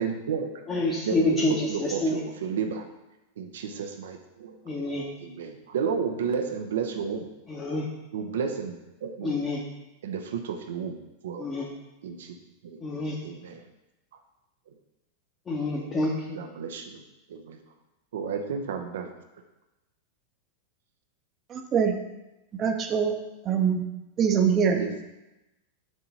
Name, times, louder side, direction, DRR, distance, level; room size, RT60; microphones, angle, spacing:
voice 1, 0.0-0.5 1.0-2.8 3.4-4.6 5.2-7.3 8.1-9.3 10.0-11.0 11.2-11.5 12.0-12.4 12.6-12.8 13.2-13.6 16.4-17.0 17.3-17.6 18.1-19.1 24.7-25.1, right 6 dB, 60° right, 5 dB, 0.6 m, -32 dB
voice 2, 0.7-2.2 4.6-5.1 7.5-7.9 9.2-9.6 11.4-11.7 12.8-13.2 15.5-16.4, left 2 dB, 20° left, -4 dB, 1.0 m, -27 dB
voice 3, 21.5-22.0 22.6-23.2 23.4-23.8 24.2-24.8, right 7 dB, 30° right, 5 dB, 0.8 m, -23 dB
6.2 x 3.8 x 5.6 m, 0.97 s
figure-of-eight pair, 90°, 0 cm